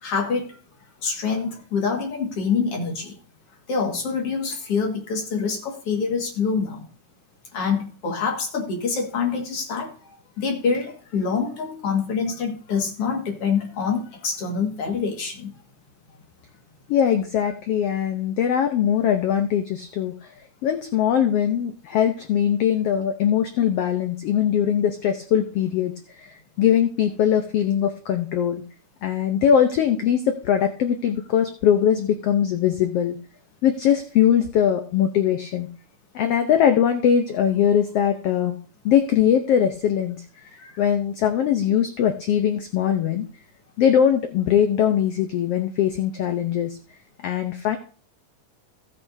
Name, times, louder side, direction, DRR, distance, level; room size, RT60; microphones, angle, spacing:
voice 1, 0.0-0.6 1.0-3.2 3.7-6.9 7.5-15.5 40.4-40.7, left 5 dB, 50° left, 1 dB, 2.5 m, -26 dB
voice 2, 16.9-20.3 20.6-28.6 29.0-33.2 33.6-35.7 36.1-38.6 38.8-40.2 40.8-43.3 43.8-46.8 47.2-47.8, left 9 dB, 80° left, 6 dB, 1.3 m, -21 dB
15.5 x 8.8 x 2.7 m, 0.39 s
omnidirectional pair, 3.7 m